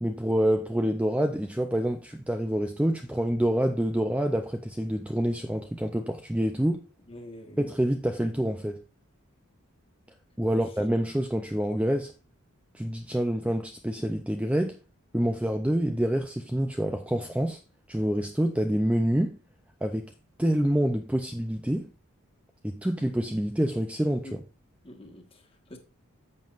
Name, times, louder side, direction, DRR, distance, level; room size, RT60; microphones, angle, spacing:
voice 1, 0.0-6.8 7.6-8.8 10.4-12.1 12.7-14.8 15.1-17.6 17.9-19.4 19.8-20.1 20.4-21.9 22.6-24.4, equal, 5° right, 0.4 m, -27 dB
voice 2, 7.1-7.6 10.5-10.6 24.2-24.4 24.8-25.8, left 1 dB, 25° left, 1.5 m, -46 dB
10.5 x 7.6 x 2.5 m
head